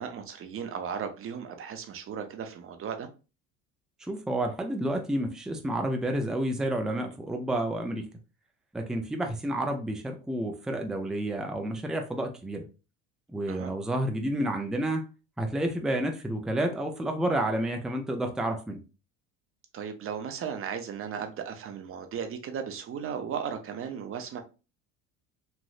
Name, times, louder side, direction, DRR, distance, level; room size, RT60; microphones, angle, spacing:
voice 1, 0.0-3.1 13.5-13.7 19.7-24.4, right 7 dB, 40° right, 0.7 m, -36 dB
voice 2, 4.1-8.1 8.7-12.6 13.3-15.0 15.4-18.8, right 1 dB, ahead, 0.5 m, -30 dB
3.2 x 2.6 x 2.4 m
supercardioid pair, 95°, 35 cm